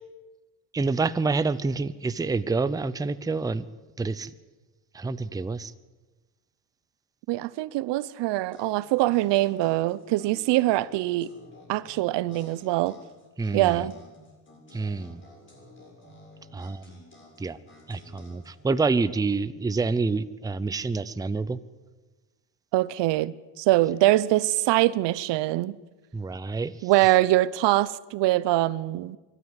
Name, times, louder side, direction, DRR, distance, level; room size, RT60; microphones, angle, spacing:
voice 1, 0.7-3.7 4.0-4.3 4.9-5.7 13.4-13.8 14.7-15.2 16.5-17.0 17.4-17.6 17.9-21.6 26.1-26.7, right 4 dB, 10° right, 0.6 m, -27 dB
voice 2, 7.3-11.3 11.7-13.0 13.5-14.0 22.7-25.8 26.8-29.2, right 16 dB, 70° right, 0.8 m, -23 dB
sound 1, 8.3-18.8, left 1 dB, 25° left, 7.2 m, -52 dB
24.5 x 13.0 x 9.8 m
cardioid pair, 130°, 44 cm